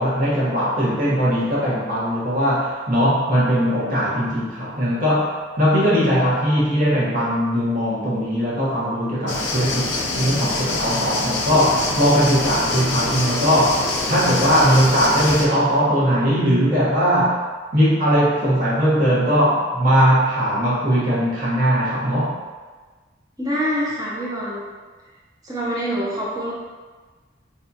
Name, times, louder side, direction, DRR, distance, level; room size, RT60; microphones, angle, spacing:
voice 1, 0.0-17.3 17.7-22.4, equal, 50° right, -8 dB, 1.0 m, -19 dB
sound 1, 9.3-15.5, left 2 dB, 70° left, 0.6 m, -25 dB
voice 2, 23.4-24.6 25.4-26.5, equal, 20° right, -7 dB, 0.6 m, -25 dB
5.2 x 2.4 x 2.7 m, 1.4 s
head